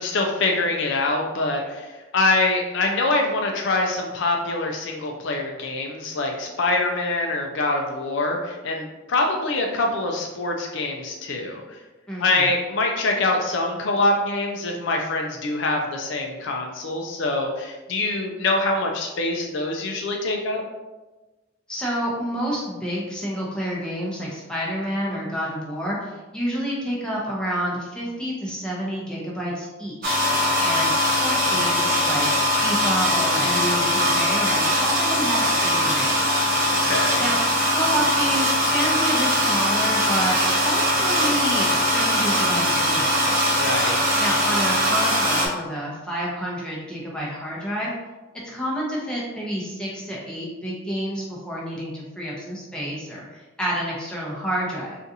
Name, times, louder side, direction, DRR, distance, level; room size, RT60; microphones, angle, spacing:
voice 1, 0.0-11.8 12.2-20.6 36.8-37.3 43.6-44.0, left 2 dB, 55° left, 1 dB, 0.4 m, -24 dB
voice 2, 12.1-12.5 21.7-30.2 30.6-32.3 32.6-36.5 37.2-37.4 37.7-43.3 44.2-47.9 48.5-55.0, equal, 5° left, -5 dB, 0.6 m, -29 dB
sound 1, 30.0-45.5, equal, 40° right, 0.8 m, -21 dB
3.9 x 2.5 x 2.7 m, 1.1 s
head